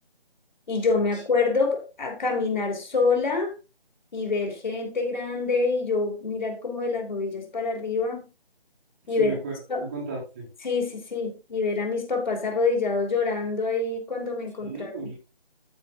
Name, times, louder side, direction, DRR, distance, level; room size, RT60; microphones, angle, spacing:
voice 1, 0.7-3.5 4.1-8.3 9.1-9.4 9.7-9.9 10.6-15.1, left 4 dB, 45° left, 3 dB, 3.2 m, -26 dB
voice 2, 9.0-9.5 9.8-10.5 14.6-15.1, right 3 dB, 10° right, -5 dB, 1.1 m, -35 dB
13.0 x 5.0 x 3.7 m, 0.29 s
figure-of-eight pair, 160°, 31 cm